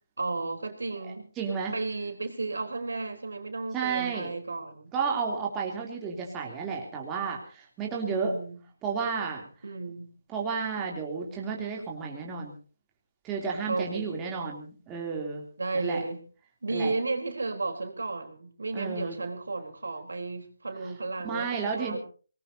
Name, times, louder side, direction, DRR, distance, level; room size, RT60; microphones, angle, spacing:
voice 1, 0.2-1.3 1.7-4.9 8.1-8.6 9.6-10.1 13.7-14.3 15.6-16.2 16.6-22.0, right 3 dB, 70° right, 6 dB, 3.7 m, -33 dB
voice 2, 1.4-1.7 3.7-4.3 4.9-8.3 8.8-9.4 10.3-12.5 13.2-15.5 15.7-16.0 16.7-16.9 18.7-19.2 21.2-22.0, right 5 dB, 15° right, -1 dB, 3.0 m, -32 dB
25.0 x 19.5 x 2.8 m, 0.38 s
figure-of-eight pair, 155°, 0 cm